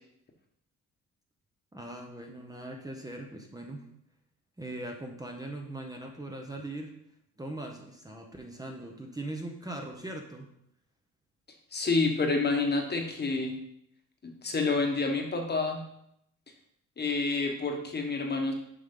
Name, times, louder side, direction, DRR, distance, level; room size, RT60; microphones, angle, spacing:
voice 1, 1.7-3.9 4.6-6.9 7.4-10.5, right 1 dB, 10° right, 1 dB, 0.9 m, -40 dB
voice 2, 11.7-13.6 14.2-15.8 17.0-18.5, left 3 dB, 35° left, 3 dB, 1.3 m, -28 dB
6.8 x 5.4 x 3.8 m, 0.74 s
cardioid pair, 90°, 30 cm